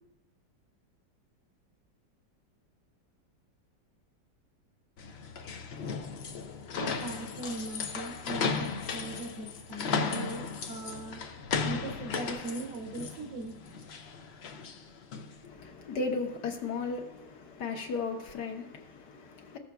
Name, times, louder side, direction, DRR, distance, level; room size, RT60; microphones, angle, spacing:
sound 1, 5.0-15.4, left 5 dB, 85° left, 0.5 m, -35 dB
voice 1, 6.7-11.2 11.6-13.6, right 2 dB, 80° right, 1.5 m, -39 dB
voice 2, 15.4-19.6, left 4 dB, 70° left, 1.6 m, -36 dB
15.0 x 7.1 x 2.3 m
omnidirectional pair, 1.9 m